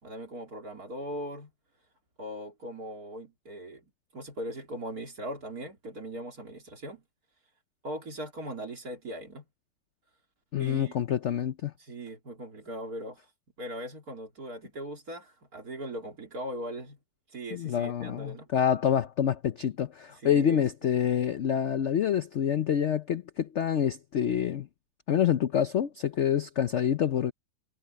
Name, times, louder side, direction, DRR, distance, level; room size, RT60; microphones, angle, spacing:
voice 1, 0.0-1.5 2.2-7.0 7.8-9.4 10.6-11.0 11.8-13.3 13.6-17.0 17.3-18.5 20.1-20.6, right 1 dB, 50° right, 4.0 m, -39 dB
voice 2, 10.5-11.7 17.5-24.7 25.1-27.3, left 9 dB, 65° left, 0.7 m, -27 dB
omnidirectional pair, 2.0 m